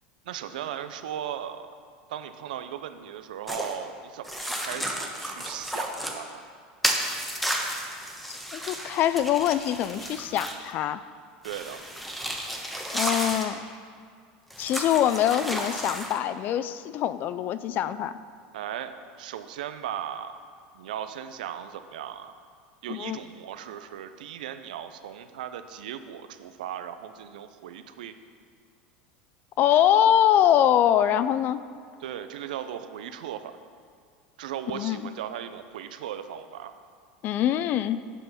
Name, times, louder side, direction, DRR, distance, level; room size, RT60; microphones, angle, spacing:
voice 1, 0.3-1.7 2.1-6.4 11.4-11.8 18.5-20.4 20.7-22.3 22.8-28.2 32.0-33.6 34.4-36.7, right 10 dB, 80° right, 10 dB, 0.5 m, -37 dB
sound 1, 3.5-3.8 4.2-6.2 6.8-10.7 11.4-13.5 14.5-16.2, equal, ahead, 1.1 m, -32 dB
voice 2, 8.3-11.0 12.9-13.6 14.6-18.2 22.9-23.2 29.6-31.6 34.7-35.0 37.2-38.0, left 10 dB, 45° left, 14 dB, 0.4 m, -24 dB
8.2 x 5.4 x 5.7 m, 2.1 s
hypercardioid pair, 100°, 4 cm